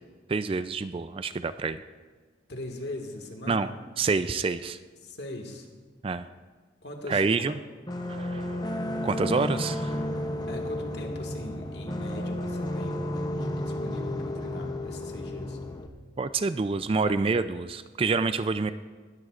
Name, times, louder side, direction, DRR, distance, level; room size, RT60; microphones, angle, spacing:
voice 1, 0.3-1.8 3.5-3.7 4.0-4.8 6.0-6.3 7.1-7.5 8.1-8.6 9.0-10.0 16.2-18.7, right 4 dB, 30° right, 12 dB, 0.3 m, -27 dB
voice 2, 2.5-3.7 5.0-5.7 6.8-7.5 10.5-15.6, left 1 dB, 60° left, 2 dB, 1.8 m, -40 dB
sound 1, 7.9-15.9, left 1 dB, 20° left, 0.7 m, -32 dB
19.5 x 14.0 x 2.5 m, 1.4 s
head